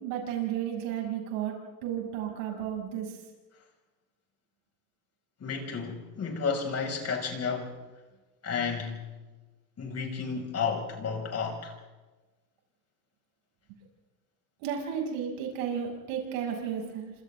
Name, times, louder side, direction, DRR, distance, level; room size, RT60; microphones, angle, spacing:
voice 1, 0.0-1.5 1.8-3.2 14.6-17.1, right 9 dB, 70° right, 7.0 m, -33 dB
voice 2, 5.4-7.7 8.4-9.0 9.8-11.7, left 5 dB, 35° left, 6.0 m, -32 dB
28.0 x 27.0 x 3.7 m
supercardioid pair, 95°, 43 cm